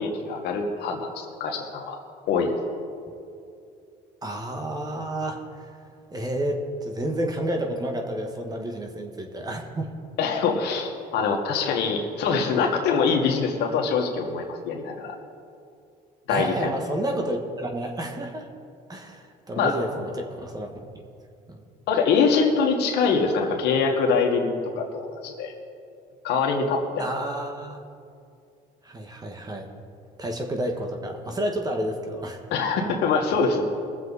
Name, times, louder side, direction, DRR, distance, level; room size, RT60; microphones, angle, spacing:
voice 1, 0.0-2.0 2.3-2.6 10.2-15.1 16.3-16.7 19.6-19.8 21.9-25.5 26.2-27.1 32.5-33.6, left 5 dB, 80° left, 2 dB, 1.8 m, -24 dB
voice 2, 4.2-5.7 6.1-9.9 16.3-18.5 18.9-20.7 21.5-21.6 27.0-27.8 28.8-29.7 30.2-32.4, right 1 dB, 25° right, 3 dB, 1.6 m, -30 dB
22.0 x 7.4 x 4.2 m, 2.4 s
cardioid pair, 110°, 17 cm